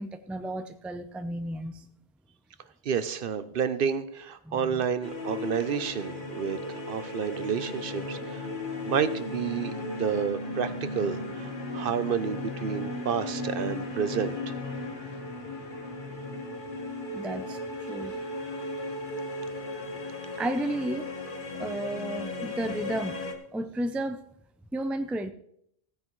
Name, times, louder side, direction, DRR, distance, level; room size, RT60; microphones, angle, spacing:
voice 1, 0.0-1.8 4.5-4.8 17.1-18.1 20.4-21.1 21.6-23.2 23.5-24.2 24.7-25.3, right 1 dB, ahead, 8 dB, 0.4 m, -33 dB
voice 2, 2.8-8.5 8.8-14.4, right 7 dB, 65° right, 12 dB, 0.8 m, -30 dB
sound 1, 5.0-23.3, left 2 dB, 55° left, 1.5 m, -36 dB
16.0 x 9.5 x 3.1 m, 0.69 s
omnidirectional pair, 1.0 m